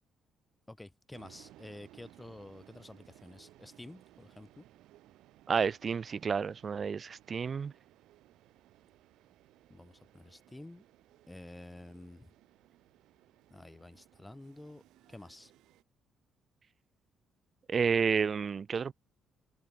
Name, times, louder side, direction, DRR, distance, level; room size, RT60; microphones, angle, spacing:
voice 1, 0.7-4.6 9.7-10.8 11.3-12.3 13.5-14.8 15.1-15.5, left 1 dB, 15° left, 1.7 m, -50 dB
sound 1, 1.1-15.8, right 15 dB, 65° right, 3.8 m, -61 dB
voice 2, 5.5-7.7 17.7-18.9, right 6 dB, 45° right, 0.3 m, -30 dB
hypercardioid pair, 45°, 0 cm